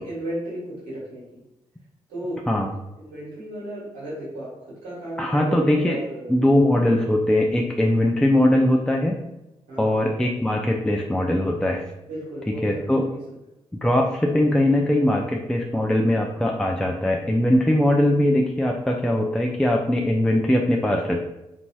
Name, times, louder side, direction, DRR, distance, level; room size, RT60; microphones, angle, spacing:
voice 1, 0.0-1.4 2.1-2.4 3.0-6.4 9.7-10.1 12.0-13.2, right 1 dB, 85° right, -8 dB, 1.4 m, -34 dB
voice 2, 5.2-6.0 6.3-9.2 9.8-11.8 12.6-13.0 13.7-21.2, left 1 dB, 5° left, 0 dB, 0.3 m, -21 dB
2.9 x 2.7 x 2.3 m, 0.93 s
hypercardioid pair, 40°, 14 cm